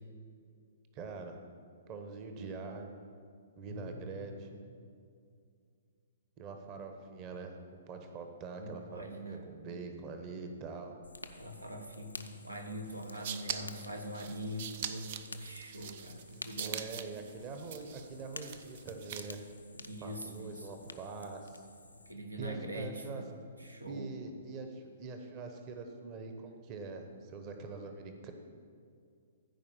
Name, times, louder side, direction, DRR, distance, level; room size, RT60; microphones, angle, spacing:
voice 1, 0.9-1.4 1.9-3.0 3.6-4.6 6.4-7.5 7.9-11.0 16.5-19.4 20.0-21.7 22.4-23.2 23.6-28.3, right 4 dB, 30° right, 5 dB, 1.1 m, -44 dB
voice 2, 3.6-4.3 8.6-9.5 11.3-16.8 19.7-20.7 21.9-23.3 23.6-24.1, equal, 85° right, 4 dB, 1.3 m, -43 dB
Fire, 11.0-22.1, left 2 dB, 85° left, 0.6 m, -51 dB
sound 1, 12.9-19.5, right 8 dB, 45° right, 0.5 m, -43 dB
14.5 x 4.8 x 7.3 m, 2.3 s
figure-of-eight pair, 115°, 0 cm